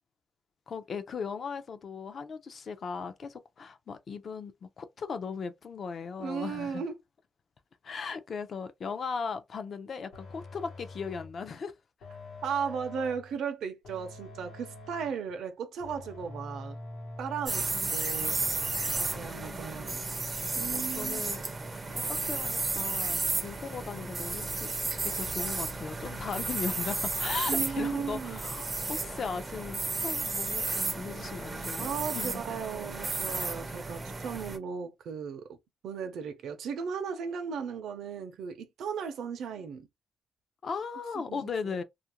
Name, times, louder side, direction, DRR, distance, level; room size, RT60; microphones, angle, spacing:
voice 1, 0.7-6.8 7.8-11.7 17.7-17.9 19.4-19.9 20.7-21.4 21.9-24.7 25.0-32.4 40.6-41.8, left 5 dB, 40° left, 0.4 m, -38 dB
voice 2, 6.2-7.0 12.4-16.8 17.2-18.4 19.0-20.1 20.5-21.3 27.5-28.4 31.8-35.6 35.8-39.9 41.1-41.8, right 6 dB, 75° right, 0.5 m, -36 dB
sound 1, 10.1-11.5 12.0-13.4 13.8-15.3 15.8-17.7 18.2-19.5, left 2 dB, 80° left, 1.0 m, -45 dB
sound 2, 17.5-34.6, right 3 dB, 20° right, 0.4 m, -33 dB
2.4 x 2.1 x 2.9 m
wide cardioid pair, 170°, 0 cm